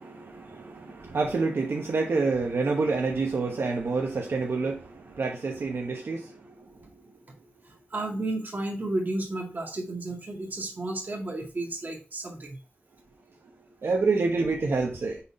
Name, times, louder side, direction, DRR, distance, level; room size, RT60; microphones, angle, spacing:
voice 1, 0.0-7.1 7.4-7.5 13.6-15.2, right 3 dB, 85° right, 1 dB, 1.0 m, -28 dB
voice 2, 7.9-12.6, right 2 dB, 50° right, 0 dB, 1.9 m, -32 dB
5.7 x 4.0 x 4.2 m, 0.34 s
wide cardioid pair, 95°, 4 cm